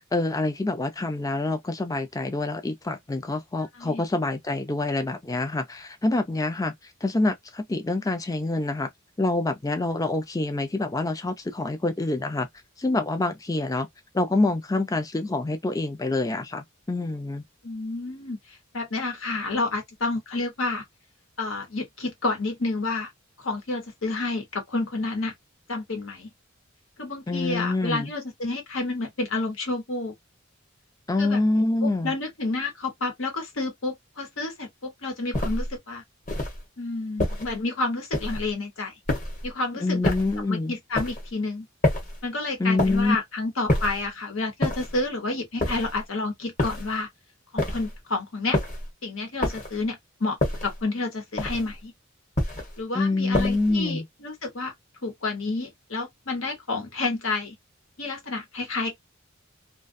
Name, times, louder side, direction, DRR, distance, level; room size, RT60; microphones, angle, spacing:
voice 1, 0.1-6.7 7.0-8.9 9.2-12.5 12.8-13.9 14.1-17.4 27.3-28.1 31.1-32.1 39.8-40.8 42.6-43.2 52.9-54.0, left 2 dB, 15° left, 0.4 m, -26 dB
voice 2, 17.6-18.4 18.7-20.8 21.4-23.1 23.4-25.3 25.7-26.3 27.0-30.1 31.2-36.0 36.8-38.9 39.4-40.1 40.5-41.7 42.2-47.1 47.5-48.6 49.0-50.4 50.6-51.9 52.8-54.7 55.0-57.5 58.0-59.0, left 3 dB, 80° left, 1.1 m, -30 dB
sound 1, 35.3-35.7 36.3-36.6 37.2-37.6 38.1-38.5 39.1-39.5 40.0-40.4 40.9-41.3 41.8-42.2 42.8-43.2 43.7-44.1 44.6-45.0 45.6-46.0 46.6-47.0 47.6-48.0 48.5-48.9 49.4-49.8 50.4-50.8 51.4-51.8 52.4-52.8 53.3-53.8, left 1 dB, 40° left, 1.1 m, -27 dB
2.3 x 2.3 x 2.5 m
head